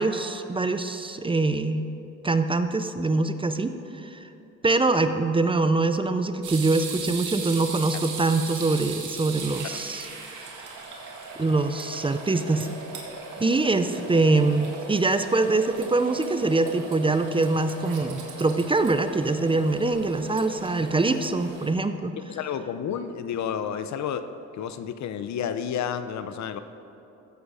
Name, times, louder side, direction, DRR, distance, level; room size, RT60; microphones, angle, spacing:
voice 1, 0.0-1.9 2.2-4.3 4.6-10.1 11.4-12.7 13.4-22.2, right 3 dB, 15° right, 9 dB, 0.6 m, -24 dB
sound 1, 6.4-21.7, right 4 dB, 80° right, 2.0 m, -38 dB
voice 2, 22.3-24.2 24.6-26.6, left 8 dB, 65° left, 11 dB, 0.7 m, -30 dB
15.0 x 7.8 x 4.9 m, 2.9 s
cardioid pair, 90°, 30 cm